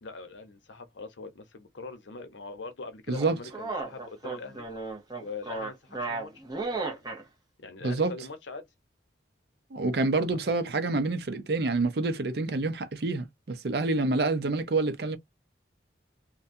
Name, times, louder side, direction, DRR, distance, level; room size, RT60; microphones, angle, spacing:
voice 1, 0.0-4.7 5.2-7.0 7.6-8.7 10.3-10.4, left 3 dB, 90° left, 0.8 m, -42 dB
sound 1, 3.1-7.2, right 3 dB, 20° right, 0.8 m, -34 dB
voice 2, 3.1-3.4 7.8-8.1 9.7-15.2, right 3 dB, 60° right, 0.5 m, -27 dB
2.6 x 2.2 x 2.6 m
head